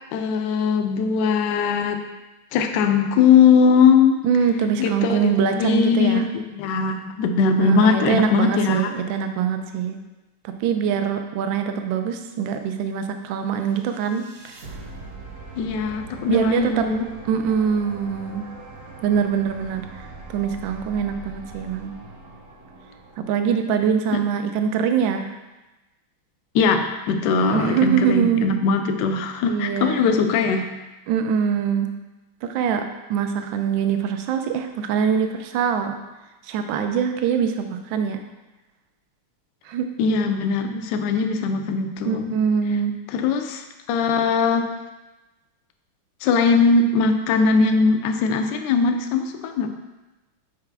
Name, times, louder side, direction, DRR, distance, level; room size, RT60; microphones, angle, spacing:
voice 1, 0.1-2.0 2.5-4.2 4.8-8.9 15.6-17.0 24.1-24.2 26.5-30.7 40.0-42.3 43.1-44.7 46.2-49.7, left 5 dB, 75° left, 5 dB, 1.1 m, -20 dB
voice 2, 4.2-6.3 7.6-10.0 10.4-14.5 16.3-16.8 17.3-18.5 19.0-19.9 20.3-21.9 23.2-25.3 27.5-28.6 29.5-30.1 31.1-31.9 32.4-36.0 36.5-38.2 39.7-40.0 42.0-42.9, right 7 dB, 75° right, 6 dB, 1.3 m, -23 dB
sound 1, 13.7-23.9, right 2 dB, 55° right, 1.0 m, -41 dB
7.1 x 4.9 x 3.3 m, 1.1 s
omnidirectional pair, 2.3 m